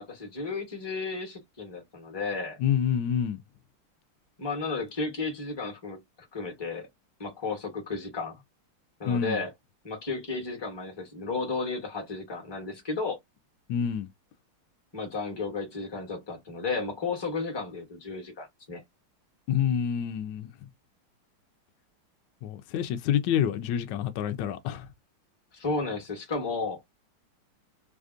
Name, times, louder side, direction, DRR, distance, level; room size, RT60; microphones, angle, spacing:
voice 1, 0.0-2.6 4.4-6.9 7.2-8.4 9.0-9.5 9.8-13.2 14.9-18.8 25.5-27.0, left 3 dB, 25° left, 0.6 m, -33 dB
voice 2, 2.6-3.4 9.1-9.4 13.7-14.1 19.5-20.5 22.4-24.9, left 9 dB, 75° left, 1.0 m, -27 dB
3.3 x 2.5 x 2.5 m
omnidirectional pair, 2.4 m